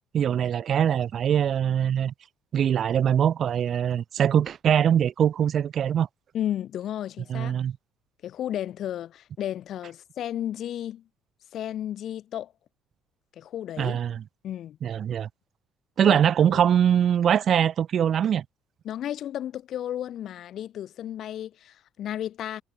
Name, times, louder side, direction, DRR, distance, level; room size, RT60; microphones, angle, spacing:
voice 1, 0.1-2.1 2.5-6.1 7.3-7.8 13.8-14.2 14.8-15.3 16.0-18.4, right 9 dB, 40° right, 1.2 m, -22 dB
voice 2, 6.3-7.5 8.2-11.0 11.5-12.5 13.4-14.0 14.4-14.8 16.0-16.2 16.5-16.6 18.8-22.6, left 11 dB, 50° left, 2.6 m, -33 dB
cardioid pair, 155°, 0 cm